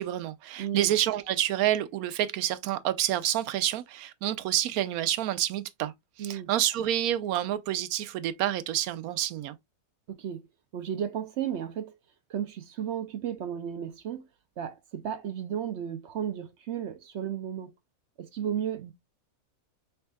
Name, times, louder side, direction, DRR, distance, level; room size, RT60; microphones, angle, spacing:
voice 1, 0.0-5.9 6.2-9.6, right 12 dB, 80° right, 1.1 m, -28 dB
voice 2, 0.6-0.9 6.2-6.5 10.1-10.4 10.7-11.9 12.3-14.3 14.6-17.7 18.2-18.9, right 9 dB, 65° right, 0.7 m, -34 dB
5.5 x 3.4 x 2.2 m
omnidirectional pair, 1.5 m